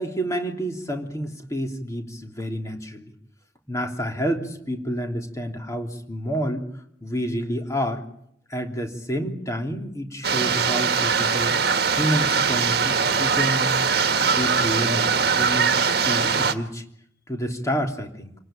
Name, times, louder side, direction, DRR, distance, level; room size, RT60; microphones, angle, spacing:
voice 1, 0.0-3.1 3.7-6.6 7.0-8.0 8.5-11.5 11.9-13.7 14.1-16.8 17.3-18.3, equal, 15° left, 3 dB, 3.2 m, -29 dB
sound 1, 10.2-16.5, right 5 dB, 55° right, 1.7 m, -21 dB
27.5 x 19.0 x 9.0 m, 0.71 s
head